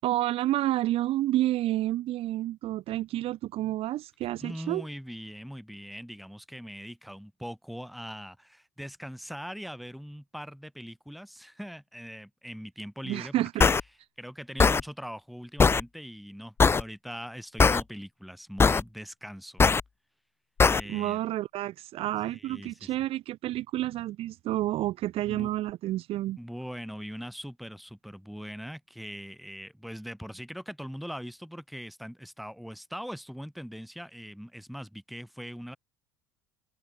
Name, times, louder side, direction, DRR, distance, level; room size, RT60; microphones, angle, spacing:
voice 1, 0.0-4.8 13.0-13.7 20.8-26.4, right 15 dB, 55° right, 2.9 m, -29 dB
voice 2, 4.4-13.7 14.2-19.6 20.7-21.3 22.2-22.9 25.3-25.5 26.4-35.8, equal, ahead, 5.9 m, -41 dB
sound 1, 13.6-13.8 14.6-14.8 15.6-15.8 16.6-16.8 17.6-17.8 18.6-18.8 19.6-19.8 20.6-20.8, left 5 dB, 20° left, 0.8 m, -19 dB
hypercardioid pair, 70°, 12 cm